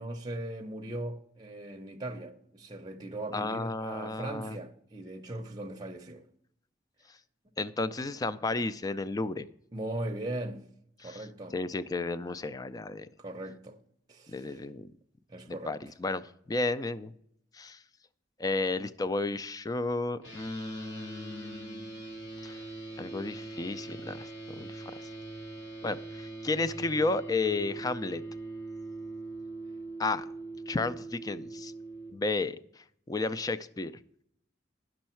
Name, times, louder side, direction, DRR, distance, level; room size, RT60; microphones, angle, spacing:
voice 1, 0.0-6.2 9.7-10.6 11.0-11.6 13.2-13.8 14.1-14.6 15.3-15.8, right 1 dB, 20° right, 0.6 m, -39 dB
voice 2, 3.3-4.6 7.6-9.5 11.0-11.2 11.5-13.1 14.3-14.9 15.5-17.1 17.5-17.8 18.4-21.9 22.4-22.6 23.0-24.3 24.6-25.1 25.8-28.2 30.0-30.2 30.7-31.7 32.1-33.9, left 3 dB, 20° left, 0.3 m, -33 dB
sound 1, 20.2-32.1, right 2 dB, 70° left, 2.6 m, -42 dB
10.5 x 6.3 x 4.4 m
head